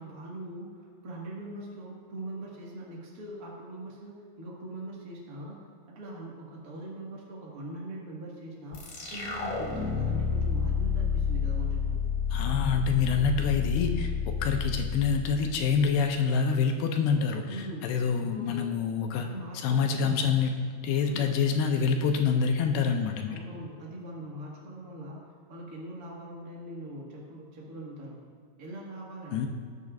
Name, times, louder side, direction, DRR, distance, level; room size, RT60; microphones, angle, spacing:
voice 1, 0.0-12.0 17.4-18.0 18.3-18.6 19.1-20.3 21.0-21.4 23.3-28.2 28.6-29.5, right 1 dB, 80° right, -4 dB, 0.8 m, -42 dB
sound 1, 8.7-16.0, left 6 dB, 55° left, 3.0 m, -30 dB
voice 2, 12.3-19.3 19.6-20.6 20.8-23.4 29.3-29.5, left 6 dB, 80° left, 4 dB, 2.5 m, -26 dB
18.5 x 8.2 x 2.5 m, 2.1 s
omnidirectional pair, 4.8 m